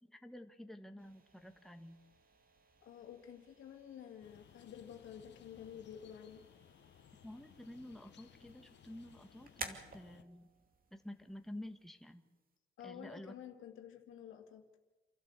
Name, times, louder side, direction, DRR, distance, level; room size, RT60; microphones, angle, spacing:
voice 1, 0.0-2.0 7.2-10.5 10.9-12.2 12.8-13.3, left 1 dB, ahead, 6 dB, 1.4 m, -50 dB
sound 1, 1.0-12.6, right 4 dB, 45° right, 2.6 m, -55 dB
voice 2, 2.8-6.4 12.8-14.6, left 9 dB, 80° left, 5 dB, 2.3 m, -51 dB
sound 2, 4.2-10.2, left 10 dB, 60° left, 1.0 m, -62 dB
28.5 x 12.5 x 8.2 m, 1.3 s
cardioid pair, 90°, 20 cm